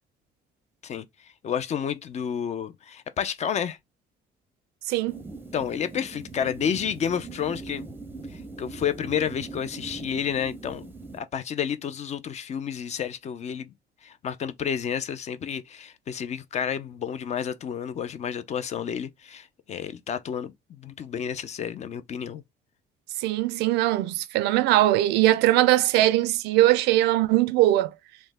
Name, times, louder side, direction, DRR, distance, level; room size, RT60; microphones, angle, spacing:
voice 1, 0.8-3.8 5.5-7.9 8.3-13.7 14.0-22.4, left 8 dB, 40° left, 0.4 m, -30 dB
voice 2, 4.9-5.2 23.2-27.9, right 15 dB, 85° right, 0.4 m, -21 dB
sound 1, 5.1-11.2, right 3 dB, 10° right, 0.6 m, -41 dB
3.1 x 2.1 x 3.2 m
cardioid pair, 110°, 17 cm